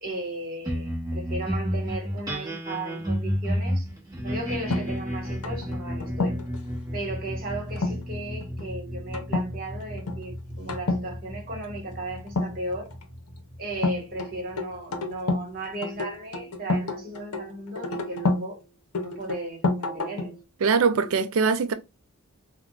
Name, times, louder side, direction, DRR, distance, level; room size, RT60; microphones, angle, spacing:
voice 1, 0.0-3.9 4.2-6.4 6.9-12.9 13.6-18.6 18.9-20.3, right 1 dB, 40° right, 1.4 m, -35 dB
sound 1, 0.6-15.3, equal, 15° right, 1.0 m, -33 dB
sound 2, 4.7-6.6 7.8-8.1 8.4-8.7 9.1-9.5 9.8-10.2 10.7-11.1 12.3-13.0 13.8-15.5 15.8-18.5 18.9-20.4, left 2 dB, 80° left, 0.6 m, -29 dB
voice 2, 20.6-21.7, right 5 dB, 70° right, 0.4 m, -22 dB
3.7 x 2.2 x 2.3 m
head